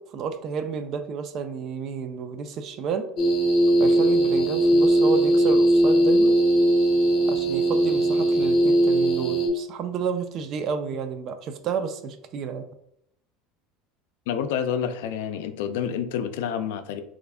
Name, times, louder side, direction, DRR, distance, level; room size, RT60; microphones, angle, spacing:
voice 1, 0.0-3.1 3.8-6.4 7.2-12.7, right 6 dB, 35° right, 9 dB, 0.3 m, -31 dB
sound 1, 3.2-9.5, right 1 dB, 40° left, 0.6 m, -19 dB
voice 2, 14.3-17.0, left 8 dB, 90° left, 9 dB, 0.4 m, -28 dB
3.2 x 2.5 x 3.4 m, 0.75 s
cardioid pair, 165°, 0 cm